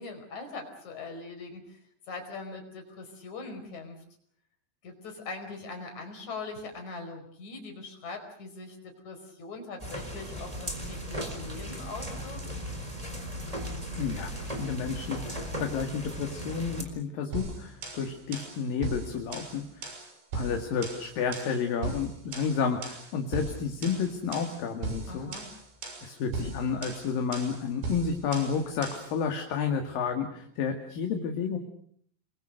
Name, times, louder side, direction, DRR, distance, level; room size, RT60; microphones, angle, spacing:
voice 1, 0.0-1.8 2.1-4.0 4.8-12.5 25.1-25.5, left 3 dB, 40° left, 5 dB, 6.1 m, -41 dB
sound 1, 9.8-16.8, equal, 10° right, 3.7 m, -37 dB
voice 2, 14.0-19.9 20.3-25.3 26.0-31.6, left 6 dB, 55° left, 5 dB, 3.4 m, -31 dB
sound 2, 17.3-29.2, right 3 dB, 70° right, 8.3 m, -38 dB
29.5 x 22.5 x 6.6 m, 0.64 s
omnidirectional pair, 5.4 m